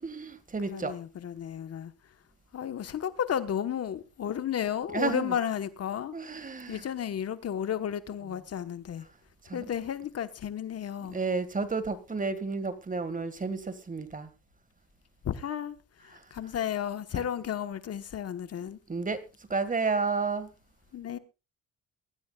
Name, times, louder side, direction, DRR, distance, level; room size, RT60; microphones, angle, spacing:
voice 1, 0.0-0.9 4.9-5.3 6.1-6.8 9.4-9.7 11.1-14.3 16.1-16.2 17.1-17.2 18.9-19.2 19.5-20.5, right 4 dB, 25° right, 1.8 m, -31 dB
voice 2, 0.7-1.9 2.5-6.2 6.7-9.1 9.5-11.2 15.2-15.8 16.0-18.8 20.9-21.2, left 9 dB, 55° left, 1.2 m, -33 dB
23.0 x 13.0 x 2.3 m
cardioid pair, 90°, 30 cm